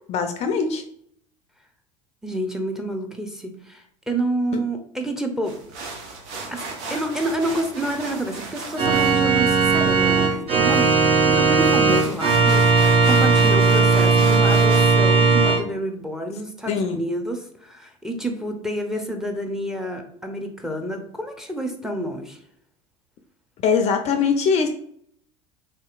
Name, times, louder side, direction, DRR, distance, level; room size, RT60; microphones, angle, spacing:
voice 1, 0.1-0.8 16.7-17.0 23.6-24.7, left 5 dB, 40° left, 6 dB, 0.4 m, -21 dB
voice 2, 2.2-5.6 6.5-6.6 6.9-22.4, right 1 dB, 5° right, 4 dB, 0.6 m, -28 dB
sound 1, 5.4-15.0, right 3 dB, 70° right, 0.9 m, -36 dB
Organ, 8.8-15.6, right 4 dB, 35° right, 0.8 m, -17 dB
3.5 x 2.8 x 2.4 m, 0.67 s
hypercardioid pair, 80°, 17 cm